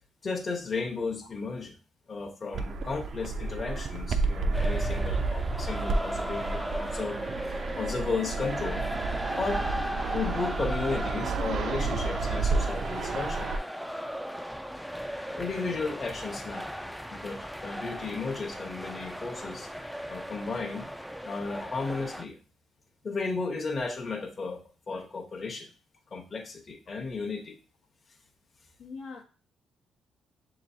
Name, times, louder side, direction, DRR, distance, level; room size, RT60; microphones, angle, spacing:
voice 1, 0.2-1.7 2.1-8.8 9.4-9.6 10.1-13.5 15.3-16.6 17.1-19.7 20.1-20.9 21.2-22.4 23.0-25.7 26.1-27.6, left 4 dB, 40° left, 2 dB, 0.9 m, -34 dB
Fixed-wing aircraft airplane, 2.5-13.6, right 3 dB, 60° right, 0.5 m, -31 dB
sound 1, 4.5-22.2, equal, ahead, 0.3 m, -37 dB
voice 2, 28.8-29.2, left 4 dB, 80° left, 1 dB, 0.9 m, -43 dB
6.5 x 3.0 x 2.6 m, 0.36 s
cardioid pair, 90°, 0 cm